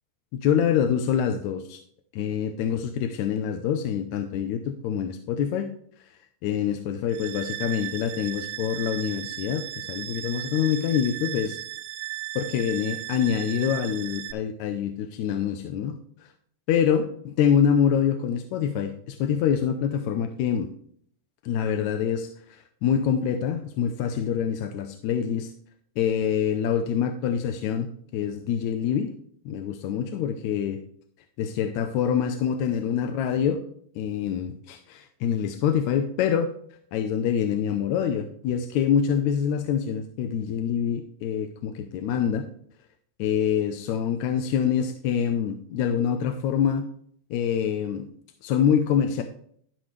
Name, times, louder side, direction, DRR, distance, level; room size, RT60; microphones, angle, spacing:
voice 1, 0.3-1.8 2.1-5.7 6.4-11.6 12.4-16.0 16.7-20.7 21.4-25.5 26.0-27.9 28.1-29.1 29.5-30.8 31.4-33.6 34.0-36.5 36.9-42.4 43.2-46.9 47.3-48.1 48.4-49.2, left 8 dB, 80° left, 6 dB, 2.0 m, -25 dB
sound 1, 7.1-14.3, right 15 dB, 80° right, 1.3 m, -36 dB
12.0 x 6.2 x 3.2 m, 0.63 s
omnidirectional pair, 3.4 m